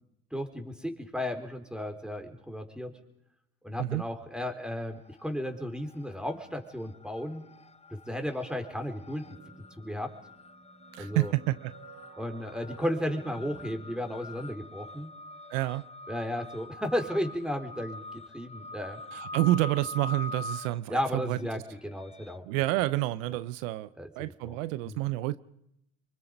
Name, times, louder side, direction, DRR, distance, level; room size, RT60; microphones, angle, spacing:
voice 1, 0.3-2.9 3.6-7.5 7.9-9.4 9.8-10.1 11.0-11.3 12.2-15.1 16.1-19.0 20.9-22.4 24.0-24.6 24.8-25.0, equal, ahead, 4.0 m, -34 dB
sound 1, 4.8-5.5 5.8-22.4, left 2 dB, 15° left, 0.8 m, -45 dB
sound 2, 9.2-14.7, right 6 dB, 70° right, 5.1 m, -53 dB
voice 2, 10.9-11.7 15.5-15.8 19.1-21.4 22.5-23.9 24.2-25.4, right 17 dB, 90° right, 0.7 m, -29 dB
26.0 x 23.5 x 5.3 m
supercardioid pair, 70°, 37 cm